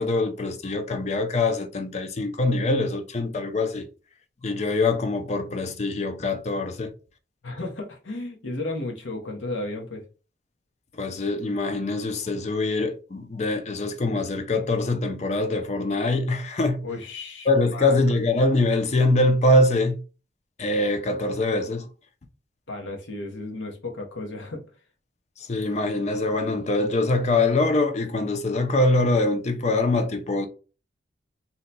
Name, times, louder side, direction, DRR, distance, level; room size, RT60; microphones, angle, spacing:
voice 1, 0.0-3.9 4.4-6.9 10.9-16.8 17.5-20.0 20.6-21.9 25.4-30.5, left 2 dB, 35° left, 0.4 m, -23 dB
voice 2, 7.4-10.0 16.8-18.0 22.7-24.6, left 2 dB, 85° left, 0.9 m, -34 dB
2.8 x 2.2 x 4.0 m
head